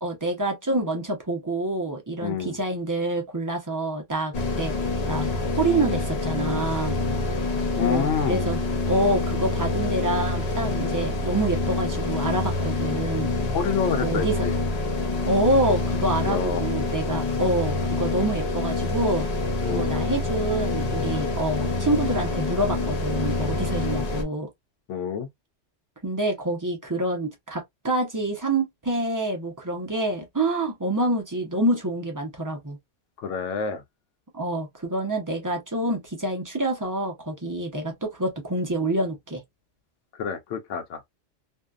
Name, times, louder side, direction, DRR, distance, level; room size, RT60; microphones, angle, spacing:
voice 1, 0.0-4.7 5.1-5.3 5.6-7.0 7.8-13.3 14.0-14.4 15.3-19.3 19.7-24.5 26.0-32.8 34.3-39.4, right 1 dB, 25° right, 0.4 m, -27 dB
voice 2, 2.2-2.6 7.8-8.5 13.5-14.6 16.2-16.6 19.6-19.9 24.9-25.3 33.2-33.8 40.1-41.0, left 6 dB, 85° left, 0.9 m, -28 dB
sound 1, 4.3-24.2, left 2 dB, 45° left, 0.6 m, -26 dB
2.6 x 2.2 x 2.3 m
omnidirectional pair, 1.2 m